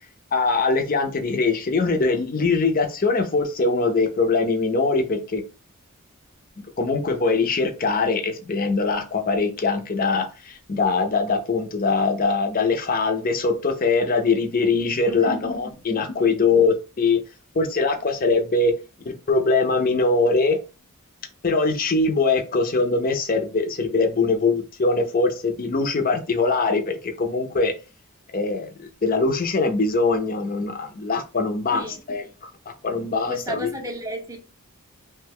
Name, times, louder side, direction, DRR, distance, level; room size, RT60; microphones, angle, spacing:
voice 1, 0.3-5.4 6.8-17.2 17.5-18.7 19.1-20.6 21.4-27.7 28.3-33.7, left 3 dB, 40° left, 0.5 m, -22 dB
voice 2, 15.0-15.4 31.7-32.0 33.3-34.4, equal, 15° right, 0.5 m, -33 dB
3.1 x 2.2 x 3.4 m
head